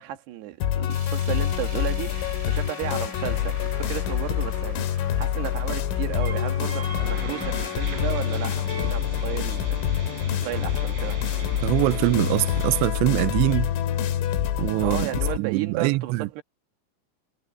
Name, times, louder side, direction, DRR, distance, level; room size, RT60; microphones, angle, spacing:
voice 1, 0.0-11.2 14.8-16.4, right 14 dB, 65° right, 3.4 m, -34 dB
sound 1, 0.6-15.4, left 10 dB, 80° left, 4.6 m, -26 dB
sound 2, 0.9-11.1 11.5-11.6 11.9-12.0 12.9-13.0, right 1 dB, 15° right, 5.7 m, -48 dB
sound 3, 6.1-12.9, right 4 dB, 40° right, 7.6 m, -39 dB
voice 2, 11.6-13.7 14.6-15.1 15.4-16.3, right 20 dB, 85° right, 2.6 m, -23 dB
omnidirectional pair, 5.8 m